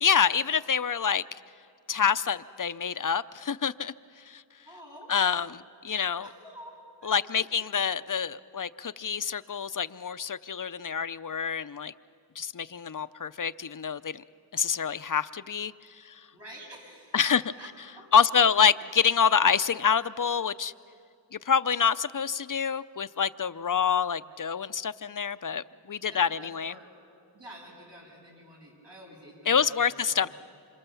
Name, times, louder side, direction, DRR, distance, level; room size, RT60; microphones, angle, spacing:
voice 1, 0.0-1.2 1.9-3.9 4.3-4.4 5.1-6.3 7.0-11.9 12.4-14.2 14.5-16.3 17.1-17.4 18.1-20.7 21.3-26.7 29.5-30.3, left 7 dB, 45° left, 15 dB, 0.5 m, -27 dB
voice 2, 4.7-5.1 6.2-6.7 7.0-7.5 16.3-17.3 17.6-17.7 17.9-18.2 26.1-26.9 27.3-30.3, equal, 75° right, -3 dB, 7.4 m, -48 dB
27.0 x 26.5 x 7.0 m, 2.4 s
wide cardioid pair, 40°, 43 cm